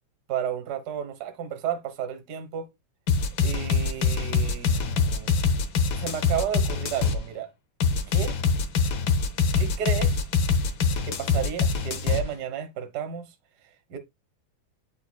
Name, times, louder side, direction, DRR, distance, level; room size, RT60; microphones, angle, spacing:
voice 1, 0.3-2.7 3.4-5.4 6.0-7.5 8.1-8.4 9.6-10.3 11.0-13.3 13.9-14.0, right 9 dB, 90° right, 0.8 m, -32 dB
sound 1, 3.1-7.2 7.8-12.2, left 5 dB, 70° left, 1.2 m, -24 dB
8.3 x 5.7 x 2.2 m
omnidirectional pair, 3.4 m